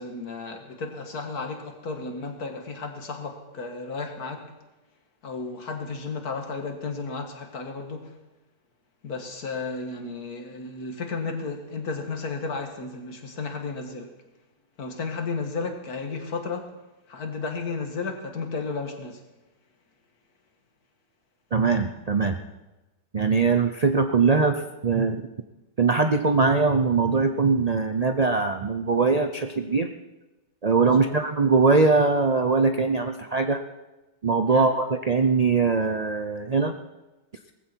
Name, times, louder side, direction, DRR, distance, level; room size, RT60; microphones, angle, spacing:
voice 1, 0.0-4.5 5.2-8.1 9.0-14.1 14.8-16.7 17.1-19.2 30.9-31.2 34.5-34.7, left 4 dB, 60° left, 4 dB, 2.2 m, -33 dB
voice 2, 21.5-22.4 23.1-25.3 25.8-29.9 30.6-33.6 34.2-36.7, right 4 dB, 55° right, 6 dB, 0.4 m, -22 dB
18.5 x 15.0 x 4.6 m, 1.1 s
omnidirectional pair, 1.8 m